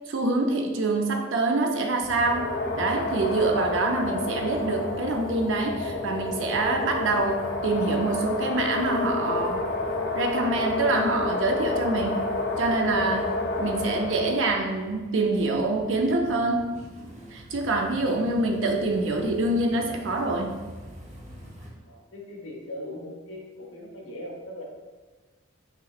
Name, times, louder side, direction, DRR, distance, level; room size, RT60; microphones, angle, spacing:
voice 1, 0.1-9.6 10.2-12.3 12.6-16.7 17.3-20.6, right 2 dB, 75° right, 3 dB, 0.6 m, -26 dB
sound 1, 2.0-21.7, equal, 40° right, 0.7 m, -44 dB
sound 2, 2.1-14.6, left 2 dB, 55° left, 0.5 m, -30 dB
voice 2, 21.8-24.6, left 1 dB, 80° left, -1 dB, 1.0 m, -39 dB
5.5 x 3.0 x 2.4 m, 1.3 s
head